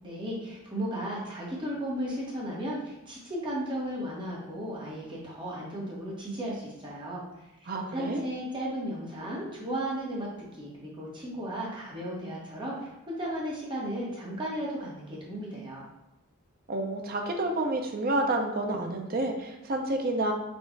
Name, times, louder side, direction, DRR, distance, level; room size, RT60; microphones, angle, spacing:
voice 1, 0.0-7.2 7.6-15.9, equal, 20° right, -5 dB, 1.2 m, -35 dB
voice 2, 7.7-8.2 16.7-20.3, right 2 dB, 45° right, 2 dB, 0.5 m, -29 dB
4.4 x 2.4 x 4.5 m, 0.90 s
head